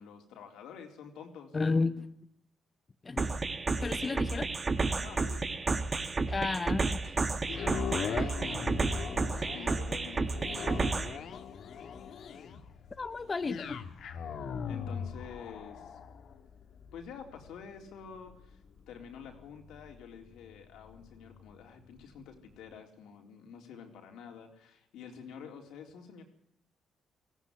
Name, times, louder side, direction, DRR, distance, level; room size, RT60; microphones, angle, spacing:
voice 1, 0.0-1.6 5.0-5.7 6.2-6.3 7.0-7.3 7.6-9.0 9.5-11.3 14.7-16.0 16.9-18.6 18.9-26.2, left 7 dB, 85° left, 3 dB, 3.9 m, -48 dB
voice 2, 1.5-2.1 3.0-3.4 3.8-4.5 6.3-7.0 13.0-13.8, left 3 dB, 30° left, 11 dB, 0.9 m, -32 dB
sound 1, 3.2-11.2, right 3 dB, 30° right, 1.7 m, -31 dB
sound 2, 7.4-21.6 22.1-22.2, left 7 dB, 65° left, 2.0 m, -41 dB
18.0 x 16.0 x 9.8 m, 0.73 s
cardioid pair, 90°, 0 cm